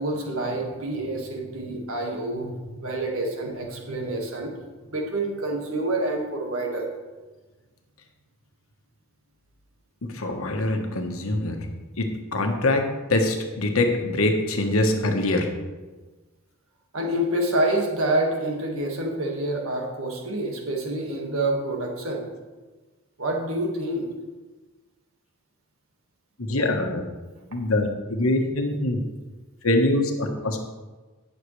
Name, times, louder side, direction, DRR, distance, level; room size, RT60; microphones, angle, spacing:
voice 1, 0.0-4.5 4.9-6.9 16.9-22.3 23.2-24.1, right 1 dB, 75° right, 0 dB, 1.9 m, -27 dB
voice 2, 10.0-11.6 12.0-15.5 26.4-27.0 27.5-29.0 29.6-30.6, left 2 dB, 80° left, 4 dB, 1.3 m, -24 dB
17.5 x 6.6 x 3.3 m, 1.3 s
head